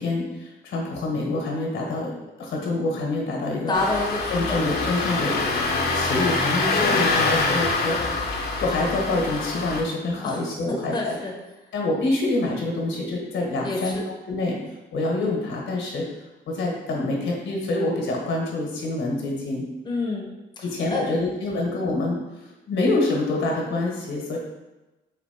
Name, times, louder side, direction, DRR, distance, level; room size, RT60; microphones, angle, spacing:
voice 1, 0.0-2.1 2.4-3.7 4.3-5.4 5.7-8.0 8.6-11.2 11.7-14.6 14.9-16.1 16.5-19.7 20.6-24.4, left 2 dB, 70° left, -1 dB, 1.3 m, -26 dB
Engine starting, 3.7-9.8, left 3 dB, 50° left, 0.8 m, -25 dB
voice 2, 3.7-5.0 5.2-5.5 6.7-7.4 7.8-8.2 10.2-10.4 10.9-11.3 13.6-14.0 19.9-20.3 20.6-20.7 20.9-21.1, left 2 dB, 20° left, -1 dB, 0.9 m, -29 dB
4.2 x 2.9 x 4.3 m, 1.1 s
cardioid pair, 90°, 20 cm